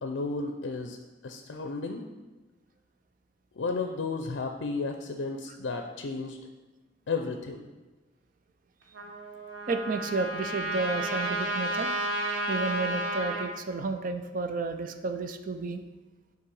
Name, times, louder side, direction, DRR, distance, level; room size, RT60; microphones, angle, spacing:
voice 1, 0.0-1.0 1.2-2.1 3.6-6.4 7.1-7.7, left 3 dB, 85° left, 4 dB, 0.5 m, -33 dB
Trumpet, 8.9-13.5, right 1 dB, 90° right, 0.9 m, -32 dB
voice 2, 9.7-11.9 12.5-15.8, right 3 dB, 45° right, 8 dB, 0.4 m, -31 dB
5.5 x 3.8 x 5.4 m, 1.2 s
head